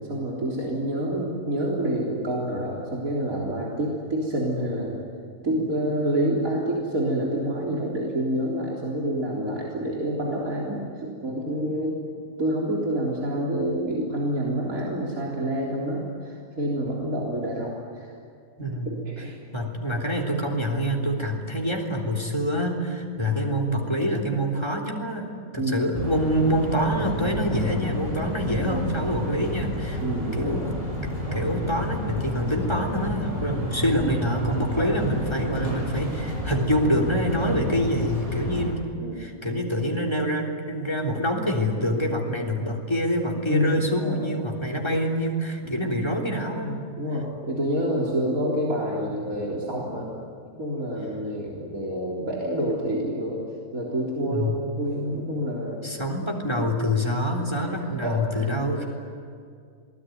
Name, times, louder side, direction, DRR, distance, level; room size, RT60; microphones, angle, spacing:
voice 1, 0.1-4.9 5.4-12.0 12.4-18.1 19.1-19.4 25.6-25.7 28.5-28.8 30.0-30.7 39.0-39.2 43.5-44.2 46.6-50.0 50.5-53.4 53.7-54.5 54.8-55.8 57.6-58.8, right 1 dB, 65° right, -4 dB, 4.2 m, -28 dB
voice 2, 18.6-19.0 19.5-30.0 30.3-30.7 31.3-46.7 54.2-54.7 55.8-58.8, equal, 15° left, 3 dB, 3.5 m, -26 dB
sound 1, 25.9-38.7, equal, 20° right, 7.9 m, -30 dB
27.5 x 20.5 x 9.4 m, 2.2 s
omnidirectional pair, 1.6 m